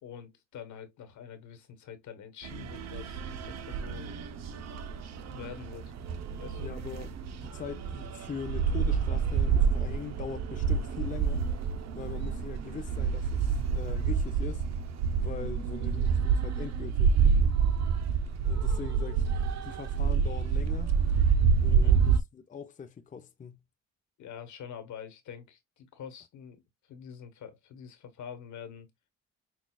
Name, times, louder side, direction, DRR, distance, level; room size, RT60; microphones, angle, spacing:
voice 1, 0.0-4.2 5.3-5.9 6.4-6.7 21.7-22.0 24.2-26.6 26.9-28.9, left 8 dB, 75° left, 1.2 m, -45 dB
sound 1, 2.4-22.2, right 6 dB, 60° right, 0.6 m, -28 dB
voice 2, 6.6-7.1 7.4-11.4 11.9-14.6 15.2-17.2 18.4-19.3 19.6-20.9 21.6-23.6, left 6 dB, 25° left, 0.6 m, -41 dB
6.1 x 2.3 x 2.3 m
cardioid pair, 90°, 30 cm